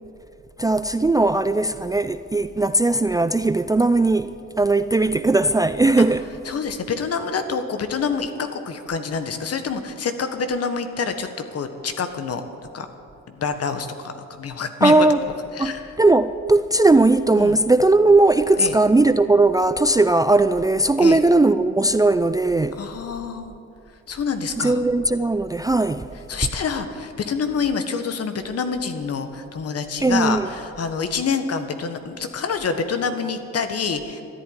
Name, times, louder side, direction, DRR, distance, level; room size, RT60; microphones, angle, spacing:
voice 1, 0.6-6.3 14.8-15.2 15.6-22.8 24.6-26.1 30.0-30.5, right 2 dB, 10° right, 0.4 m, -18 dB
voice 2, 6.4-12.4 12.7-12.9 13.3-15.1 15.5-15.9 17.4-17.6 18.6-18.7 21.0-21.2 22.8-23.5 24.1-24.8 26.3-34.2, left 5 dB, 55° left, 1.6 m, -27 dB
13.0 x 11.0 x 9.7 m
cardioid pair, 90°, 30 cm